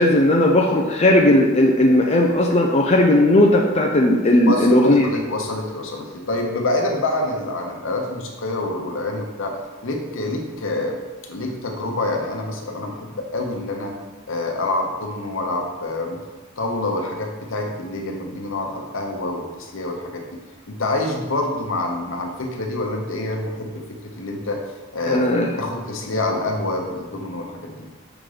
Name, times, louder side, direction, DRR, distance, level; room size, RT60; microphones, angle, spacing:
voice 1, 0.0-5.1 25.1-25.5, left 1 dB, 30° left, 0 dB, 0.5 m, -16 dB
voice 2, 4.5-11.0 11.3-14.0 14.3-16.2 16.6-20.2 20.7-24.6 24.9-25.2 25.6-27.9, left 2 dB, 65° left, 2 dB, 0.9 m, -26 dB
6.0 x 3.8 x 4.9 m, 1.2 s
head